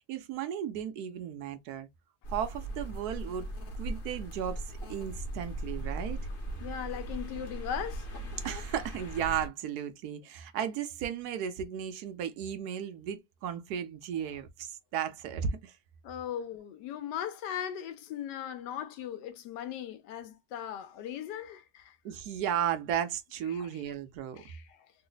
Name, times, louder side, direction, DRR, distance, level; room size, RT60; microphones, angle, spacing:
voice 1, 0.1-1.9 2.3-3.5 3.8-6.3 8.4-15.8 22.0-24.4, right 9 dB, 70° right, 1.1 m, -35 dB
sound 1, 2.2-9.5, right 1 dB, 40° left, 0.9 m, -39 dB
voice 2, 6.6-8.1 16.0-22.0 23.5-23.8 24.4-24.9, left 9 dB, 90° left, 1.3 m, -38 dB
3.2 x 2.0 x 3.8 m
omnidirectional pair, 1.8 m